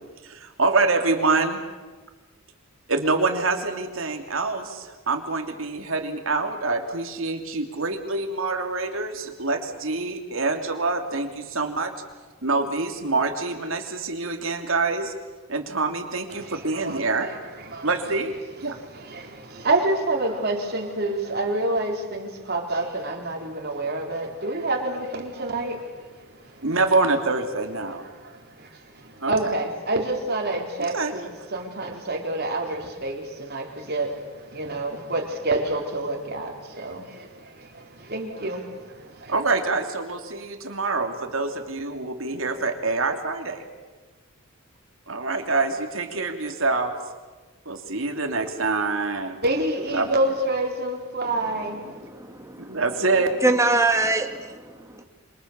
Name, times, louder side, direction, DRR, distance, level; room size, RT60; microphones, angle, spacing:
voice 1, 0.2-1.6 2.9-11.9 12.4-15.1 15.5-17.3 17.8-18.8 26.6-28.0 29.2-29.5 30.8-31.1 39.3-43.6 45.1-46.9 47.6-49.4 49.9-50.1 52.7-53.3, right 3 dB, 70° right, 4 dB, 3.1 m, -26 dB
voice 2, 16.3-17.9 18.6-26.7 28.1-39.3 49.4-51.9, right 2 dB, 50° right, 2 dB, 4.1 m, -28 dB
voice 3, 51.9-52.4 53.4-55.0, right 2 dB, 15° right, 5 dB, 2.1 m, -23 dB
28.0 x 26.0 x 7.0 m, 1.3 s
head